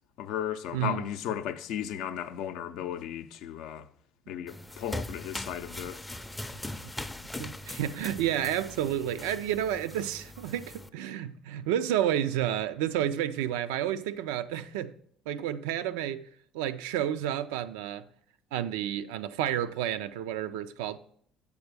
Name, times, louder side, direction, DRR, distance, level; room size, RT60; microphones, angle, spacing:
voice 1, 0.2-3.9 4.3-6.0, left 10 dB, 75° left, 0.4 m, -35 dB
voice 2, 0.7-1.0 4.3-4.4 7.4-14.9 15.3-16.3 16.5-18.1 18.5-21.0, right 11 dB, 85° right, 0.3 m, -30 dB
sound 1, 4.5-10.9, left 1 dB, 10° left, 0.4 m, -40 dB
7.8 x 3.5 x 6.6 m
supercardioid pair, 75°, 0 cm